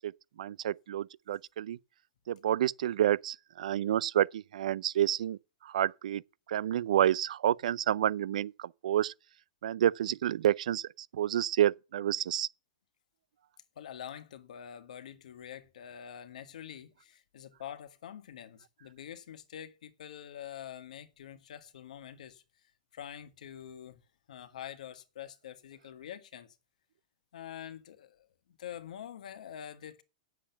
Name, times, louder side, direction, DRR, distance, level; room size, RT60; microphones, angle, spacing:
voice 1, 0.4-1.8 2.4-5.4 5.7-6.2 6.5-8.5 8.8-9.1 9.6-10.8 11.2-12.5, right 11 dB, 80° right, 0.4 m, -29 dB
voice 2, 13.7-22.4 22.9-24.0 24.3-26.6 27.3-28.3 28.6-30.0, left 10 dB, 85° left, 1.5 m, -46 dB
8.8 x 7.3 x 5.6 m
supercardioid pair, 160°, 4 cm